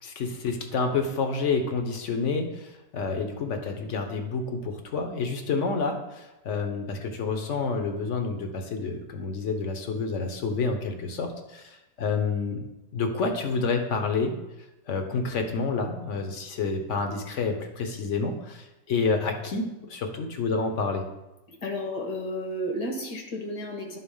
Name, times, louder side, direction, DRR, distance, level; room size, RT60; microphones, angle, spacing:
voice 1, 0.0-12.6 12.9-14.4 14.9-21.0, left 4 dB, 50° left, 5 dB, 1.2 m, -29 dB
voice 2, 21.5-24.0, equal, 70° left, 1 dB, 2.0 m, -32 dB
11.5 x 4.0 x 5.5 m, 0.98 s
omnidirectional pair, 1.8 m